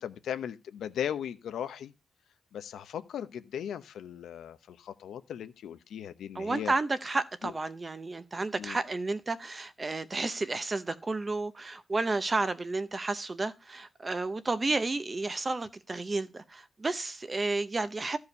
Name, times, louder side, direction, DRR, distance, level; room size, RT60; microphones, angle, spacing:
voice 1, 0.0-1.9 2.5-6.7 7.4-7.5 8.6-8.8, left 9 dB, 75° left, 0.8 m, -37 dB
voice 2, 6.3-18.2, right 3 dB, 20° right, 0.7 m, -32 dB
13.5 x 4.8 x 5.4 m
cardioid pair, 140°, 0 cm